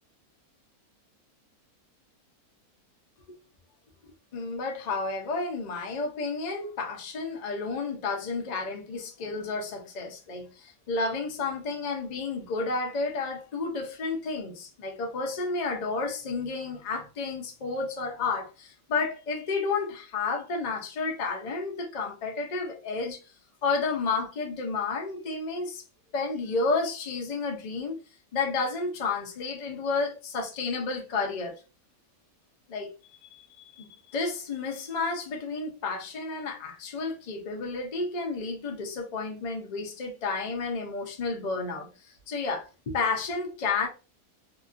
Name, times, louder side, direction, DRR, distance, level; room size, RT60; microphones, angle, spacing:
voice 1, 4.3-23.2 23.6-25.8 26.1-28.0 28.3-31.5 32.7-32.9 33.3-33.4 33.7-43.9, left 4 dB, 75° left, 0.4 m, -31 dB
2.9 x 2.5 x 2.4 m
omnidirectional pair, 1.6 m